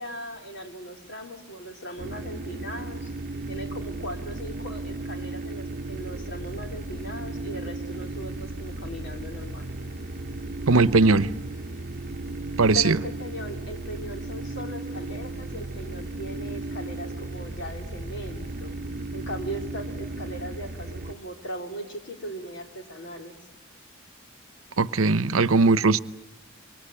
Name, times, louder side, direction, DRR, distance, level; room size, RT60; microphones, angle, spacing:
voice 1, 0.0-3.1 3.5-9.7 12.7-18.8 19.1-23.4, equal, 60° left, 3.7 m, -38 dB
sound 1, 2.0-21.1, right 2 dB, 45° right, 0.9 m, -35 dB
voice 2, 10.7-11.3 12.6-13.0 24.8-26.0, right 3 dB, 80° right, 0.8 m, -19 dB
26.0 x 23.5 x 8.6 m
head